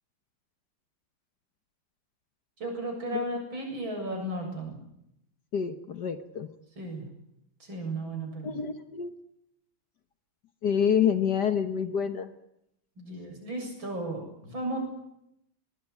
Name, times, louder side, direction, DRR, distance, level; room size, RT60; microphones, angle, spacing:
voice 1, 2.6-4.8 6.8-7.1 7.6-8.6 13.0-14.8, right 1 dB, 65° right, 3 dB, 8.3 m, -35 dB
voice 2, 5.5-6.5 8.4-9.1 10.6-12.3, left 7 dB, 55° left, 9 dB, 1.7 m, -27 dB
22.5 x 20.5 x 9.7 m, 0.81 s
omnidirectional pair, 2.3 m